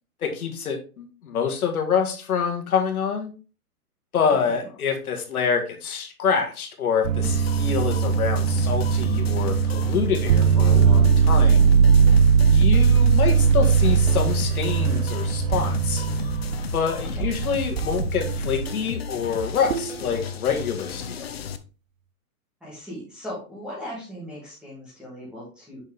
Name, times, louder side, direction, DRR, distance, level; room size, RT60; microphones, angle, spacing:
voice 1, 0.2-3.3 4.1-11.7 12.5-16.0 16.7-21.3, left 6 dB, 70° left, 3 dB, 1.6 m, -26 dB
sound 1, 7.0-18.8 19.7-20.0, right 6 dB, 60° right, 0.5 m, -20 dB
sound 2, 7.2-21.6, left 7 dB, 45° left, 0.5 m, -34 dB
voice 2, 22.6-25.8, equal, ahead, -7 dB, 1.7 m, -38 dB
6.2 x 4.5 x 3.3 m, 0.34 s
hypercardioid pair, 165°, 45 cm